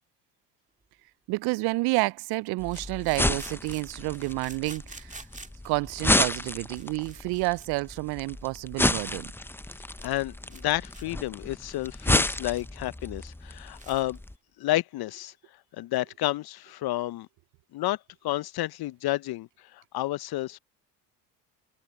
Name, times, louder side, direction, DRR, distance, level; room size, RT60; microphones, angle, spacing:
sound 1, 0.8-0.9 2.7-5.7 6.4-6.5 6.7-7.7 8.0-8.1 8.6-8.7 9.0-9.2 9.5-9.6 9.8-10.2 10.5-10.6 10.9-11.1 11.5-12.7 13.0-13.1 13.4-13.5 13.7-14.2, right 3 dB, 15° right, 2.1 m, -48 dB
voice 1, 1.3-5.2 5.6-9.3, right 25 dB, 55° right, 0.5 m, -29 dB
sound 2, 2.6-14.3, left 1 dB, 5° left, 0.8 m, -31 dB
voice 2, 10.0-14.2 14.6-15.3 15.8-17.3 17.7-18.0 18.2-20.6, left 16 dB, 50° left, 0.9 m, -30 dB
hypercardioid pair, 60°, 48 cm